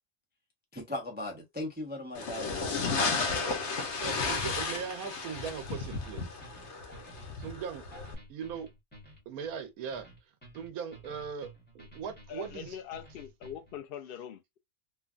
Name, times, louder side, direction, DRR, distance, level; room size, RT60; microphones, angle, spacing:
voice 1, 0.7-2.9, left 1 dB, 15° right, 0.4 m, -38 dB
sound 1, 2.1-8.1, left 4 dB, 55° left, 1.0 m, -33 dB
voice 2, 4.0-6.4 7.4-7.9 8.3-8.7 9.3-10.1 10.5-11.5 11.7-12.8, right 7 dB, 80° right, 1.1 m, -39 dB
sound 2, 5.9-13.8, right 1 dB, 10° left, 0.9 m, -53 dB
voice 3, 12.3-14.6, left 10 dB, 85° left, 0.5 m, -42 dB
3.2 x 2.2 x 2.4 m
omnidirectional pair, 1.5 m